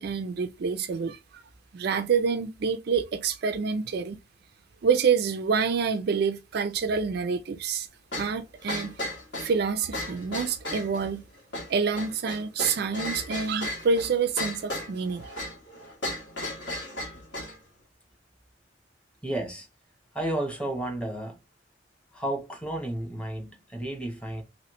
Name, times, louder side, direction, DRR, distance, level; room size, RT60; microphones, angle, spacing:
voice 1, 0.0-1.4 1.7-4.2 4.8-7.9 8.2-9.1 9.4-11.2 11.7-15.3, right 5 dB, 55° right, 0.4 m, -27 dB
sound 1, 8.1-17.6, left 1 dB, 65° left, 1.5 m, -35 dB
voice 2, 19.2-19.7 20.1-21.4 22.1-24.4, right 1 dB, 5° left, 0.8 m, -32 dB
3.1 x 2.8 x 2.9 m
head